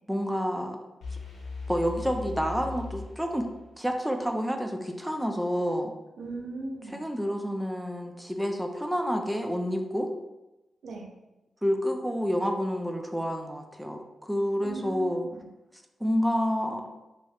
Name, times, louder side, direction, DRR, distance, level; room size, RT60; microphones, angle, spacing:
voice 1, 0.1-0.8 1.7-3.5 3.8-5.9 6.9-10.1 11.6-15.3 16.0-16.8, equal, 5° right, 3 dB, 0.3 m, -29 dB
sound 1, 1.0-3.9, left 3 dB, 90° left, 1.0 m, -39 dB
voice 2, 6.2-7.1 10.8-11.1 14.6-15.5, right 2 dB, 80° right, 2 dB, 0.4 m, -38 dB
3.0 x 2.3 x 2.7 m, 0.99 s
cardioid pair, 75°, 0 cm